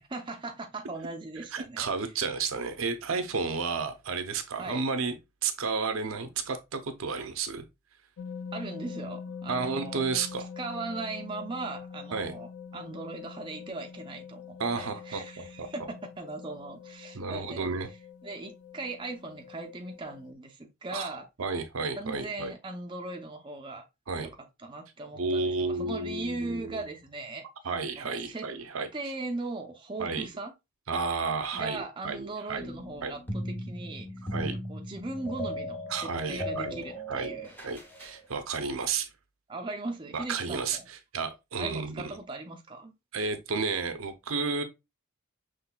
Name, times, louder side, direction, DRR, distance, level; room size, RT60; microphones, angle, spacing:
voice 1, 0.1-1.9 4.6-4.8 8.5-10.0 10.6-17.7 18.2-21.3 22.0-23.9 24.2-24.4 24.6-27.4 28.0-28.5 28.9-30.5 31.5-34.1 34.4-37.5 39.5-40.9 41.6-42.9, right 3 dB, 25° right, 0.5 m, -39 dB
voice 2, 1.5-5.1 5.4-7.6 9.5-10.5 12.1-12.3 14.6-15.7 17.1-17.9 20.9-21.1 21.4-22.5 24.1-24.3 25.1-26.8 27.6-28.9 30.0-30.3 30.9-32.7 33.0-33.1 34.3-34.6 35.9-36.8 37.1-39.1 40.1-42.1 43.1-44.6, right 4 dB, 70° right, 0.6 m, -32 dB
sound 1, 8.2-20.3, left 6 dB, 85° left, 0.4 m, -44 dB
sound 2, 32.6-38.2, equal, 10° left, 0.9 m, -37 dB
5.9 x 3.2 x 2.2 m
head